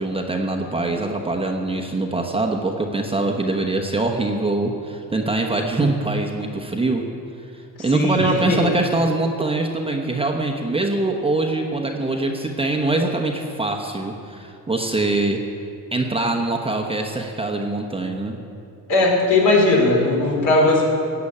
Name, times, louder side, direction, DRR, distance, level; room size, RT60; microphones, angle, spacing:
voice 1, 0.0-7.1 7.5-15.4 15.9-18.4, right 2 dB, 15° right, 1 dB, 0.9 m, -23 dB
voice 2, 7.8-8.7 18.9-20.9, left 2 dB, 60° left, -2 dB, 4.0 m, -18 dB
16.5 x 6.9 x 8.5 m, 2.5 s
cardioid pair, 140°, 36 cm